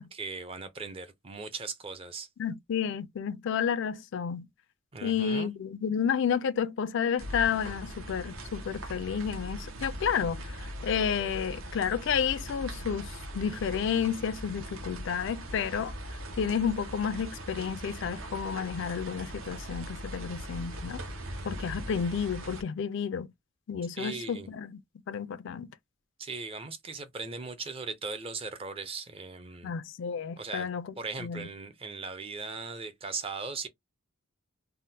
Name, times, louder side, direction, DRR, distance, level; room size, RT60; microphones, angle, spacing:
voice 1, 0.0-2.3 4.9-5.5 24.0-24.5 26.2-29.7 30.4-33.7, right 4 dB, 25° right, 0.5 m, -38 dB
voice 2, 2.4-4.5 5.0-15.9 16.4-21.0 21.5-23.3 23.7-24.8 25.1-25.7 29.6-30.9 31.2-31.5, left 7 dB, 60° left, 0.3 m, -31 dB
sound 1, 7.2-22.6, right 1 dB, 75° right, 0.8 m, -40 dB
3.4 x 2.0 x 2.7 m
head